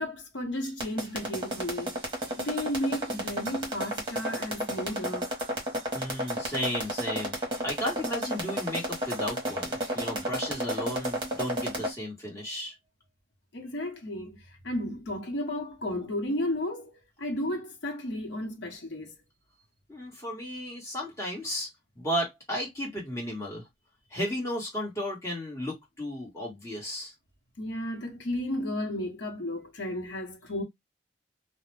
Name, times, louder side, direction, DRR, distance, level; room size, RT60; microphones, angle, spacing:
voice 1, 0.0-2.0 2.4-5.3 13.5-16.9 17.2-19.2 27.6-30.6, left 1 dB, 75° left, 0.8 m, -33 dB
sound 1, 0.6-11.9, equal, 25° right, 1.0 m, -31 dB
voice 2, 5.9-7.4 7.6-12.7 19.9-21.7 21.9-23.6 24.1-27.1, equal, 15° left, 1.2 m, -34 dB
2.4 x 2.1 x 3.1 m
head